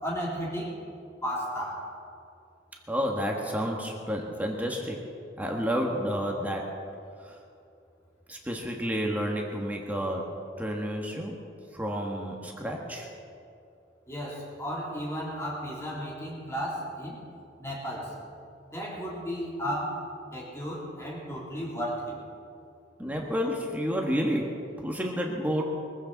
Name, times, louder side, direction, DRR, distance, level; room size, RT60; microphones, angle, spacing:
voice 1, 0.0-0.8 1.2-1.9 14.1-17.2 17.6-18.2 18.7-20.0 20.3-22.2, equal, 15° left, -5 dB, 3.3 m, -34 dB
voice 2, 2.9-5.0 5.4-6.7 7.2-7.4 8.3-10.2 10.6-11.4 11.7-13.1 23.0-24.5 24.8-25.6, equal, 10° right, 0 dB, 1.5 m, -30 dB
22.5 x 14.5 x 4.1 m, 2.5 s
head